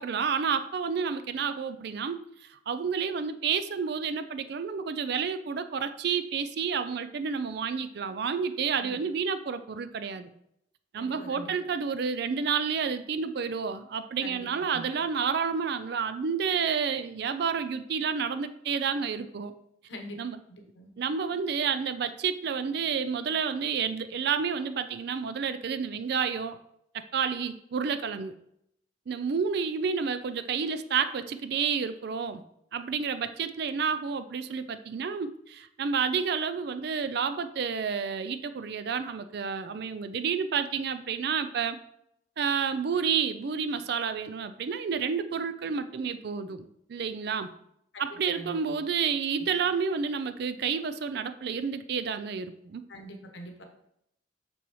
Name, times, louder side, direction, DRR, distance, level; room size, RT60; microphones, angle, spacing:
voice 1, 0.0-10.3 10.9-19.5 20.2-20.4 21.0-26.6 26.9-28.3 29.1-32.4 32.7-41.8 42.4-47.5 48.0-52.8, right 6 dB, 60° right, 11 dB, 0.4 m, -30 dB
voice 2, 11.0-11.5 14.2-14.9 19.9-20.2 20.5-20.9 47.9-48.8 52.9-53.6, equal, 75° left, 4 dB, 1.1 m, -44 dB
6.9 x 6.2 x 3.1 m, 0.76 s
head